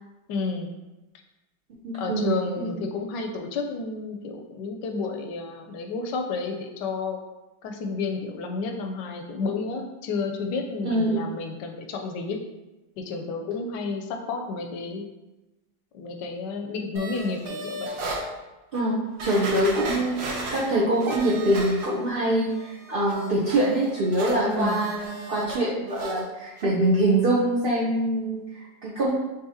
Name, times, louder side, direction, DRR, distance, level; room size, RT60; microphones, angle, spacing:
voice 1, 0.3-0.7 1.9-7.2 7.6-12.4 13.0-15.1 15.9-17.9 24.4-24.9, left 4 dB, 85° left, 4 dB, 1.2 m, -31 dB
voice 2, 1.8-2.8 10.8-11.2 18.7-29.1, right 1 dB, 65° right, -7 dB, 0.5 m, -24 dB
sound 1, 17.0-18.2 18.7-18.8 19.2-22.2 22.5-25.6 25.9-26.2 26.6-26.7, right 2 dB, 80° right, 1.5 m, -36 dB
6.3 x 2.7 x 2.8 m, 1.1 s
omnidirectional pair, 1.8 m